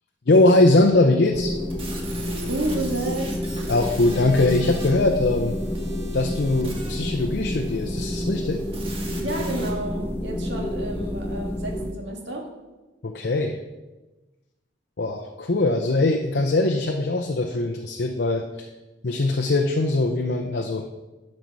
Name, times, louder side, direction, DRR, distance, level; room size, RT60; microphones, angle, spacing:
voice 1, 0.3-1.5 3.7-5.6 6.1-8.6 13.0-13.6 15.0-18.4 19.0-20.9, left 2 dB, 60° left, 4 dB, 0.6 m, -21 dB
sound 1, 1.3-11.9, equal, 15° left, 0.6 m, -29 dB
sound 2, 1.7-9.7, right 3 dB, 30° right, 1.6 m, -41 dB
voice 2, 2.5-3.4 9.2-12.5, right 1 dB, 70° right, 0 dB, 1.9 m, -30 dB
11.5 x 5.4 x 4.7 m, 1.1 s
head